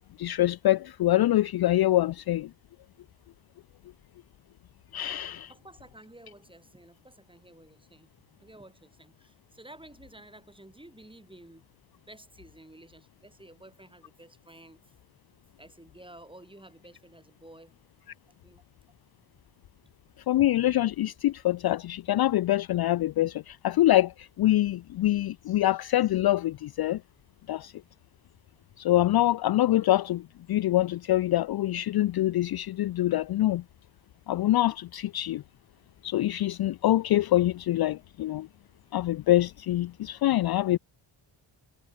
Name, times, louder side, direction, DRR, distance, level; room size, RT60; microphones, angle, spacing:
voice 1, 0.2-2.5 4.9-5.5 20.3-27.0 27.5-27.7 28.8-33.6 34.3-35.4 36.0-38.5 38.9-40.8, left 14 dB, 50° left, 0.5 m, -25 dB
voice 2, 5.5-8.1 8.3-11.6 12.0-15.0 15.6-17.8 18.4-18.6, right 1 dB, 10° right, 7.4 m, -52 dB
cardioid pair, 80°, 49 cm